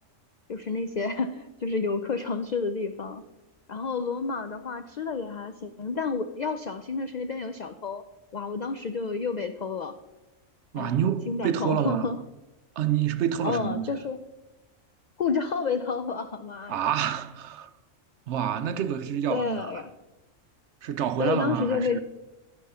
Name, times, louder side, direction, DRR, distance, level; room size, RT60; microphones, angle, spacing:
voice 1, 0.5-3.2 3.7-8.0 8.3-10.0 10.8-10.9 11.3-12.2 13.4-14.2 15.2-16.9 19.3-19.9 21.2-22.0, left 4 dB, 70° left, 0.4 m, -30 dB
voice 2, 10.7-12.1 12.8-13.9 16.7-17.7 18.3-19.6 20.8-22.0, right 9 dB, 70° right, 0.8 m, -27 dB
13.5 x 5.4 x 5.6 m
omnidirectional pair, 1.4 m